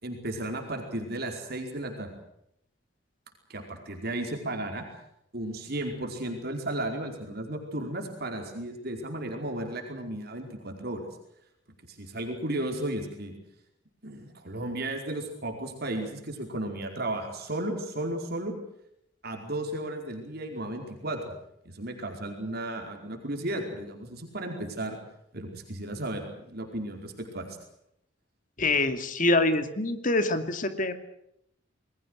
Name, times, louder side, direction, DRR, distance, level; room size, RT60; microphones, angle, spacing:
voice 1, 0.0-2.1 3.5-4.9 5.3-11.0 11.9-13.3 14.0-18.5 19.2-21.2 21.6-25.0 25.3-27.6, right 1 dB, 55° right, 3 dB, 4.7 m, -34 dB
voice 2, 28.6-30.9, left 2 dB, 45° left, 9 dB, 2.5 m, -25 dB
28.0 x 21.5 x 6.5 m, 0.77 s
head